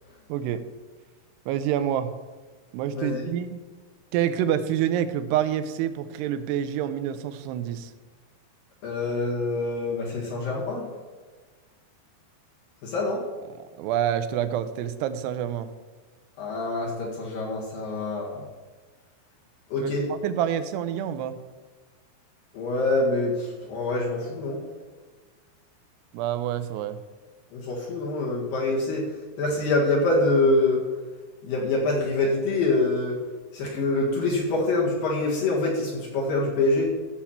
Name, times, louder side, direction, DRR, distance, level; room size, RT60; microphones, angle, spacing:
voice 1, 0.3-0.6 1.5-2.1 2.7-3.6 4.1-7.9 13.6-15.7 19.8-21.4 26.1-27.0, right 10 dB, 90° right, 11 dB, 2.8 m, -27 dB
voice 2, 2.9-3.3 8.8-10.9 12.8-13.3 16.4-18.4 19.7-20.1 22.5-24.6 27.5-30.9 31.4-33.2 33.5-36.9, left 2 dB, 65° left, -4 dB, 3.3 m, -25 dB
14.0 x 7.2 x 4.4 m, 1.4 s
omnidirectional pair, 4.7 m